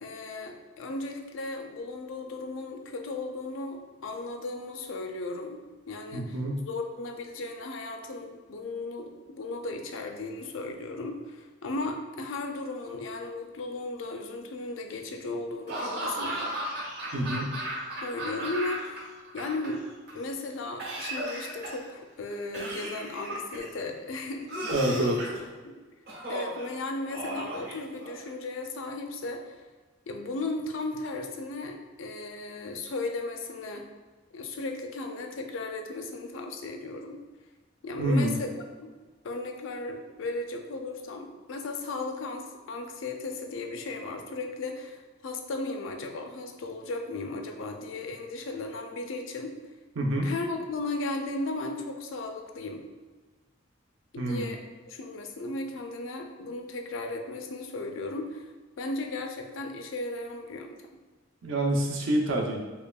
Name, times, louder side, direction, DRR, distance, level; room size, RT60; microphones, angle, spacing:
voice 1, 0.0-6.4 6.7-16.5 18.0-19.1 19.3-19.8 20.1-24.5 24.9-25.1 25.6-25.7 26.3-29.6 30.1-33.9 34.3-37.2 37.8-38.5 38.8-38.9 39.2-49.5 50.2-52.8 54.1-54.6 54.9-58.5 58.8-60.8, left 2 dB, 70° left, 4 dB, 0.4 m, -36 dB
voice 2, 6.1-6.6 17.1-17.5 24.7-25.2 38.0-38.4 50.0-50.3 54.2-54.5 61.4-62.6, right 1 dB, 70° right, 0 dB, 0.6 m, -27 dB
Laughter / Cough, 15.7-19.0 19.2-20.1 20.8-21.9 22.5-23.7 24.5-25.4 26.1-26.6 27.1-28.3, right 1 dB, 55° right, 1.0 m, -35 dB
5.3 x 2.2 x 2.3 m, 1.3 s
head